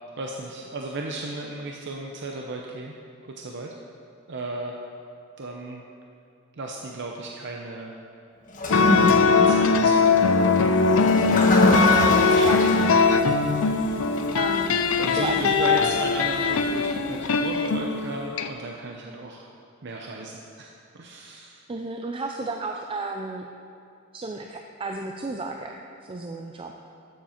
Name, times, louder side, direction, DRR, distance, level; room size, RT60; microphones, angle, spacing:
voice 1, 0.2-2.9 3.2-3.7 4.3-4.8 5.4-5.8 6.6-7.9 9.0-10.1 14.0-14.1 15.0-19.5 19.8-21.6, right 2 dB, 55° right, 0 dB, 0.7 m, -35 dB
Toilet flush, 8.5-17.8, left 1 dB, 40° left, 1.3 m, -28 dB
sound 1, 8.7-18.5, left 4 dB, 70° left, 0.5 m, -21 dB
voice 2, 11.6-12.0 12.3-13.0 14.3-14.7 15.0-15.6 21.7-23.4 24.1-26.7, right 3 dB, 25° right, 3 dB, 0.4 m, -33 dB
12.5 x 7.5 x 4.4 m, 2.5 s
head